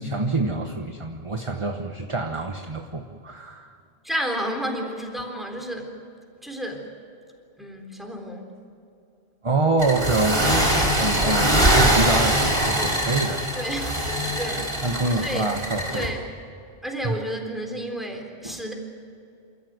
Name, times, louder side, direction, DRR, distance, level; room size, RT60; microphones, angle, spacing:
voice 1, 0.0-3.8 9.4-13.4 14.8-16.1 17.0-17.1 18.4-18.6, right 3 dB, 30° right, 4 dB, 1.2 m, -26 dB
voice 2, 4.0-6.0 6.4-6.9 7.6-8.5 13.5-14.0 14.4-14.8 15.1-15.5 15.8-16.2 16.8-18.7, equal, ahead, 2 dB, 3.8 m, -31 dB
sound 1, 9.8-16.1, right 1 dB, 60° right, 5.1 m, -22 dB
28.5 x 14.0 x 9.5 m, 2.5 s
omnidirectional pair, 1.1 m